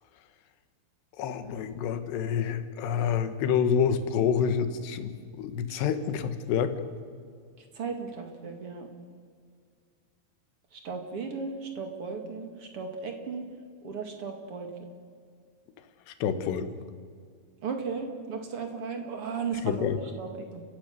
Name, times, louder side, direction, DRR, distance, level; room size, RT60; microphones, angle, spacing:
voice 1, 1.2-6.7 16.1-16.7 19.6-20.0, left 7 dB, 75° left, 10 dB, 3.4 m, -28 dB
voice 2, 7.7-8.9 10.7-13.5 13.8-14.7 17.6-19.9 20.2-20.6, right 5 dB, 45° right, 5 dB, 2.1 m, -35 dB
30.0 x 16.0 x 6.7 m, 2.1 s
omnidirectional pair, 5.1 m